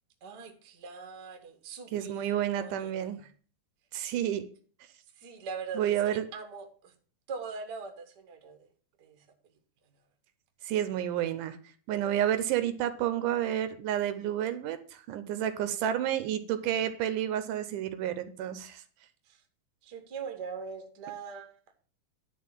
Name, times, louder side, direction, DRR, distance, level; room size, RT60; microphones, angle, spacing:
voice 1, 0.2-3.2 5.1-6.9 7.3-8.7 9.0-9.3 19.2-19.4 19.8-21.6, right 5 dB, 50° right, 4 dB, 1.3 m, -42 dB
voice 2, 1.9-3.2 3.9-4.4 5.8-6.2 10.6-11.6 11.9-18.8, right 11 dB, 80° right, 11 dB, 2.2 m, -30 dB
10.5 x 4.1 x 7.4 m, 0.43 s
omnidirectional pair, 3.8 m